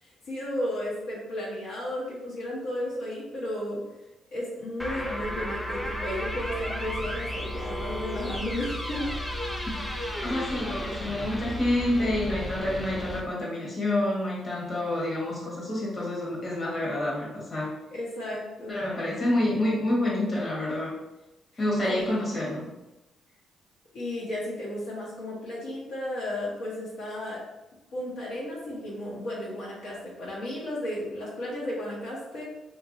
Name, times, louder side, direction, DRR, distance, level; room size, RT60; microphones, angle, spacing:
voice 1, 0.0-3.8 4.3-9.1 17.9-18.8 21.9-22.0 23.9-27.4 27.9-32.4, left 1 dB, 80° left, -5 dB, 0.8 m, -34 dB
sound 1, 4.8-13.2, equal, 10° left, 0.4 m, -33 dB
voice 2, 10.2-17.7 18.7-20.9 21.6-22.7, left 1 dB, 40° left, -5 dB, 1.0 m, -28 dB
2.8 x 2.5 x 2.5 m, 1.0 s
cardioid pair, 90°, 0 cm